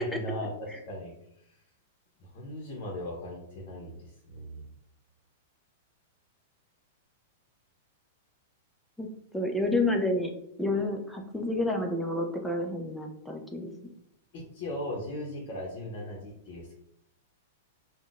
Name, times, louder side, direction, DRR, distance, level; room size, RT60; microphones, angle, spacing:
voice 1, 0.0-0.5 0.9-1.6 2.2-4.7 14.3-16.8, left 1 dB, 50° left, -2 dB, 0.7 m, -38 dB
voice 2, 9.3-10.3 10.6-13.7, left 2 dB, 5° left, 2 dB, 0.4 m, -29 dB
3.6 x 2.1 x 2.4 m, 0.77 s
hypercardioid pair, 130°, 0 cm